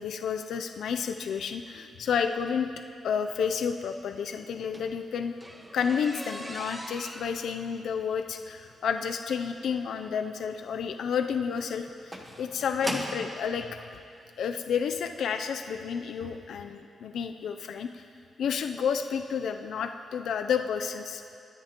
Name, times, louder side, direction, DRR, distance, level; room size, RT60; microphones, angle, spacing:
voice 1, 0.0-2.7 3.0-5.3 5.7-14.0 14.4-18.0 18.4-21.2, left 7 dB, 80° left, 6 dB, 0.5 m, -31 dB
sound 1, 4.5-13.3 14.2-14.3 14.9-15.1 15.4-15.5 15.8-15.9, equal, 15° right, 1.3 m, -40 dB
21.0 x 9.9 x 3.0 m, 2.4 s
cardioid pair, 95°, 0 cm